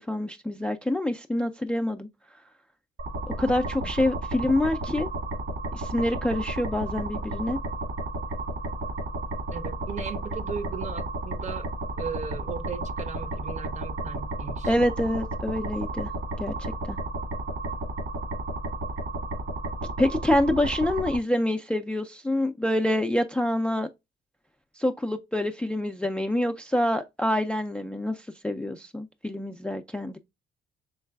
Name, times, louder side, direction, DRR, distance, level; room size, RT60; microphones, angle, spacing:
voice 1, 0.0-2.1 3.4-5.1 5.7-7.6 14.6-16.1 16.4-17.0 20.0-23.9 24.8-30.2, left 1 dB, 5° left, 0.3 m, -26 dB
sound 1, 3.0-21.2, right 1 dB, 70° right, 1.7 m, -33 dB
voice 2, 9.5-11.7 12.0-14.7, right 5 dB, 35° right, 0.7 m, -37 dB
4.5 x 3.2 x 2.2 m
cardioid pair, 90°, 20 cm